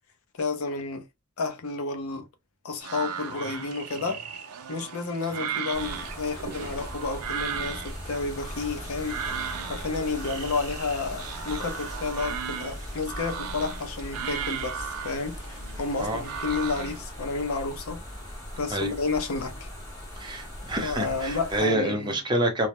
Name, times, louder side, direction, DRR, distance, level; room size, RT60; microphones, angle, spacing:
voice 1, 0.3-1.1 1.4-2.3 2.6-4.2 4.7-9.2 9.6-18.0 18.6-19.7 20.8-22.2, left 4 dB, 70° left, 0.5 m, -31 dB
sound 1, 2.8-17.1, right 7 dB, 80° right, 0.5 m, -37 dB
sound 2, 5.7-21.6, equal, 15° left, 0.9 m, -39 dB
voice 2, 20.2-22.7, right 1 dB, 20° right, 0.6 m, -27 dB
2.2 x 2.0 x 2.8 m
head